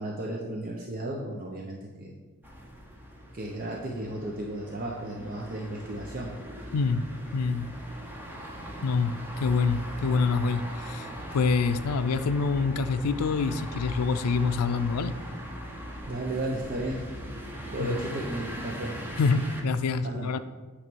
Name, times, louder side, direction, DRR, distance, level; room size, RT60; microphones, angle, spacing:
voice 1, 0.0-2.2 3.3-6.7 16.1-17.3 17.7-19.0 20.0-20.3, right 1 dB, 40° right, -1 dB, 0.8 m, -34 dB
sound 1, 2.4-19.6, equal, 10° right, 1.0 m, -40 dB
voice 2, 6.7-7.1 7.3-7.7 8.8-15.1 17.8-18.0 19.2-20.4, left 4 dB, 85° left, 12 dB, 0.4 m, -26 dB
9.0 x 3.3 x 6.1 m, 1.3 s
head